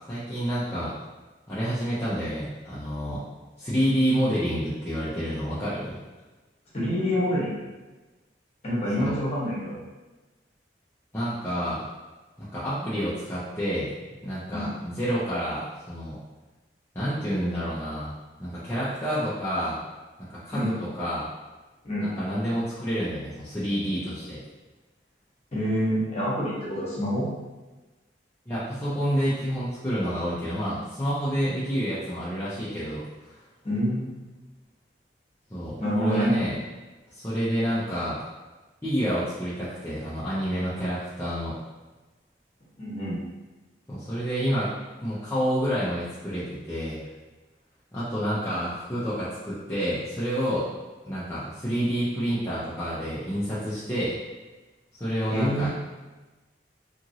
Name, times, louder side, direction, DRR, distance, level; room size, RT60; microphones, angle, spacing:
voice 1, 0.1-0.9 1.5-3.2 3.6-6.0 9.0-9.2 11.1-11.9 12.4-13.9 14.2-16.2 16.9-18.1 18.4-19.8 20.2-20.7 21.0-21.3 22.0-24.4 28.5-33.4 35.5-36.5 37.1-38.2 38.8-41.6 43.9-44.7 45.0-47.0 47.9-50.6 51.0-54.2 54.9-55.7, equal, 15° left, -11 dB, 0.5 m, -28 dB
voice 2, 6.7-7.6 8.6-9.8 14.5-14.7 20.5-20.7 21.8-22.1 25.5-27.3 33.6-34.1 35.8-36.4 42.8-43.2 55.3-55.7, equal, 35° left, -7 dB, 0.9 m, -27 dB
2.9 x 2.5 x 2.7 m, 1.2 s
head